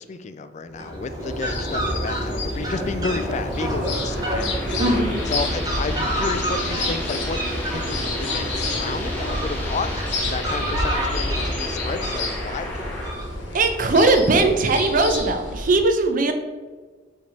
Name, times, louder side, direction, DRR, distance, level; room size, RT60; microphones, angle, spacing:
voice 1, 0.0-4.8 5.2-7.4 7.7-12.7, left 4 dB, 40° left, 11 dB, 0.3 m, -31 dB
Fowl, 0.7-13.7, equal, 20° right, 1.1 m, -29 dB
sound 1, 1.2-15.8, left 2 dB, 85° left, 1.3 m, -30 dB
space psychedelic, 3.1-13.1, left 1 dB, 10° left, 1.4 m, -34 dB
voice 2, 4.8-5.2 13.5-16.3, right 2 dB, 45° right, 7 dB, 0.6 m, -19 dB
5.3 x 3.4 x 5.2 m, 1.4 s
head